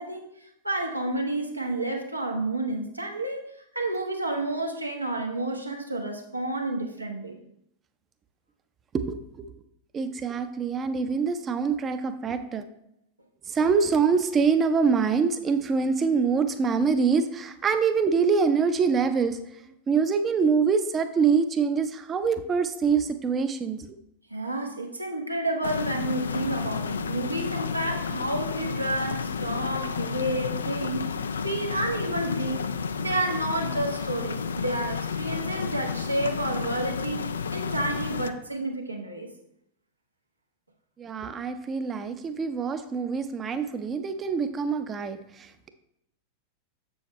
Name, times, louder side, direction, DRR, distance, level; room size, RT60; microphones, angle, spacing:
voice 1, 0.0-3.4 3.7-7.3 24.3-31.1 31.4-32.7 33.0-39.3, right 2 dB, 85° right, 2 dB, 1.1 m, -30 dB
voice 2, 8.9-9.5 9.9-12.6 13.5-19.4 19.9-23.8 41.0-45.7, right 5 dB, 25° right, 9 dB, 0.6 m, -25 dB
sound 1, 25.6-38.3, left 6 dB, 70° left, 0.4 m, -31 dB
7.2 x 7.0 x 3.1 m, 0.80 s
figure-of-eight pair, 90°, 0 cm